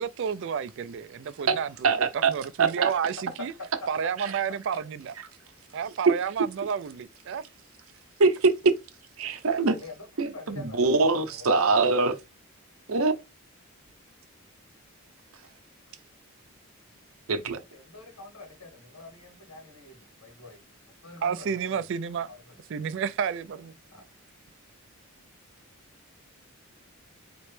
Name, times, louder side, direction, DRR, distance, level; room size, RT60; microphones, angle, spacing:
voice 1, 0.0-3.5 3.9-5.1 5.7-7.4 21.2-22.3 22.7-23.7, right 7 dB, 55° right, 0.3 m, -31 dB
voice 2, 1.8-2.3 2.6-2.9 8.2-8.7 9.2-9.7 10.2-12.1 12.9-13.1 17.3-17.6, right 4 dB, 70° right, 0.7 m, -23 dB
voice 3, 9.8-10.1 10.3-11.5 17.7-20.6 21.0-21.8 22.3-22.6 23.9-24.0, left 3 dB, 90° left, 2.0 m, -46 dB
4.3 x 3.0 x 3.2 m
head